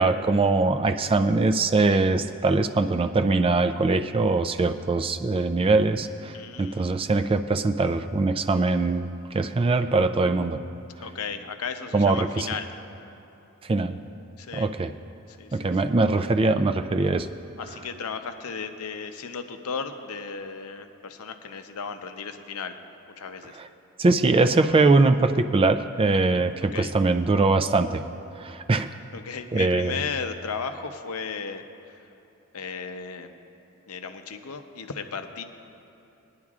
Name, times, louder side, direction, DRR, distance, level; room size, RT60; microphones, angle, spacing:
voice 1, 0.0-10.6 11.9-12.5 13.6-14.0 14.5-14.9 15.5-17.3 24.0-28.0 28.4-28.9 29.5-30.0, right 3 dB, 25° right, 9 dB, 0.4 m, -22 dB
voice 2, 6.3-7.1 11.0-12.7 14.4-14.7 15.3-15.7 17.6-22.8 23.2-23.6 26.6-26.9 29.1-32.0 32.5-33.3 33.9-35.4, left 5 dB, 75° left, 7 dB, 0.7 m, -35 dB
21.5 x 10.5 x 2.4 m, 3.0 s
head